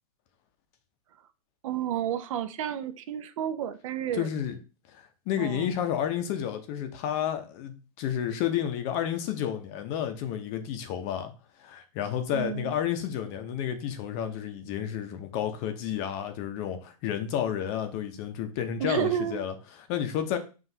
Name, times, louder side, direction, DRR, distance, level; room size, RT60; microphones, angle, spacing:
voice 1, 1.6-4.3 5.4-5.7 12.3-12.7 18.8-19.4, right 10 dB, 60° right, 0.5 m, -31 dB
voice 2, 4.2-4.6 4.9-11.3 11.6-20.4, left 9 dB, 35° left, 0.6 m, -31 dB
5.9 x 2.4 x 2.7 m
hypercardioid pair, 140°, 19 cm